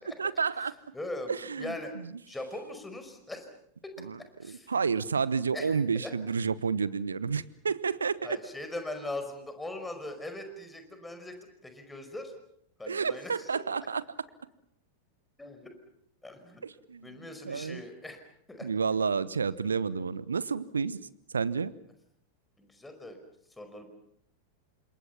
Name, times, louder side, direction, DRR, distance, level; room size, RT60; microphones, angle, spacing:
voice 1, 0.2-0.7 1.3-1.7 4.0-4.2 4.7-8.4 12.9-14.0 16.6-17.8 18.6-21.0 21.3-21.7, right 5 dB, 75° right, 19 dB, 1.1 m, -30 dB
voice 2, 0.9-1.9 2.3-3.5 3.8-3.9 4.4-4.7 5.5-6.1 8.2-11.4 11.6-12.3 12.8-13.5 15.4-15.7 16.2-16.6 17.0-18.2 18.5-18.7 22.6-23.2 23.6-23.9, left 2 dB, 10° left, 7 dB, 5.3 m, -40 dB
30.0 x 27.0 x 5.9 m, 0.68 s
figure-of-eight pair, 90°, 0 cm